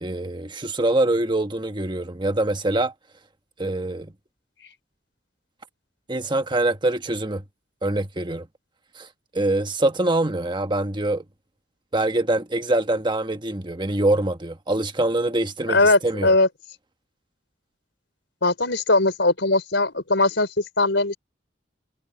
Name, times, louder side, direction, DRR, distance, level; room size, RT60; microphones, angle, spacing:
voice 1, 0.0-2.9 3.6-4.1 6.1-7.4 7.8-8.5 9.0-9.1 9.3-11.2 11.9-16.3, right 2 dB, 25° right, 1.3 m, -24 dB
voice 2, 15.7-16.5 18.4-21.2, left 2 dB, 75° left, 4.5 m, -20 dB
head